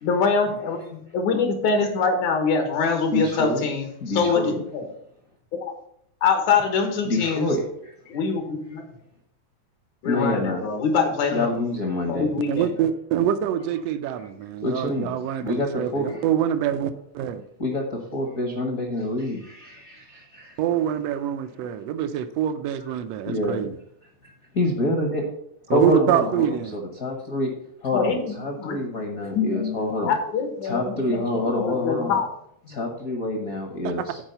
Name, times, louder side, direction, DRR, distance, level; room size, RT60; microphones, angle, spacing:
voice 1, 0.0-3.9 4.1-4.8 5.5-5.7 6.2-7.5 8.1-8.8 10.0-11.5 12.1-12.7 27.9-28.8 29.3-32.3 32.7-32.8, left 5 dB, 80° left, 5 dB, 2.7 m, -24 dB
voice 2, 3.1-3.7 4.0-4.6 7.0-7.9 10.0-10.6 11.3-12.3 14.6-15.2 15.4-16.2 17.6-20.6 23.3-23.6 24.5-25.3 25.7-26.5 27.0-27.5 27.8-30.1 30.6-32.2 32.7-34.2, left 1 dB, 50° left, 3 dB, 1.0 m, -26 dB
voice 3, 12.5-17.4 20.6-23.7 25.7-26.8 33.8-33.9, right 10 dB, 75° right, 11 dB, 1.5 m, -25 dB
8.9 x 4.8 x 6.7 m, 0.72 s
omnidirectional pair, 3.3 m